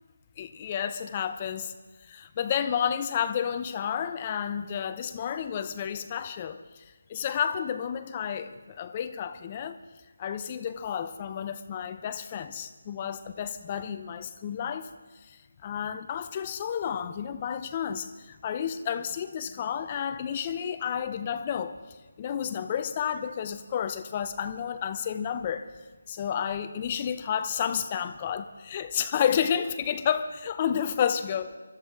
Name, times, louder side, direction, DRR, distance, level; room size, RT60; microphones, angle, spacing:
voice 1, 0.4-1.7 2.0-6.8 7.1-9.8 10.2-14.9 15.3-21.7 22.2-25.7 26.1-31.6, left 8 dB, 25° left, 10 dB, 0.7 m, -31 dB
24.0 x 13.5 x 3.7 m, 1.3 s
figure-of-eight pair, 160°, 0 cm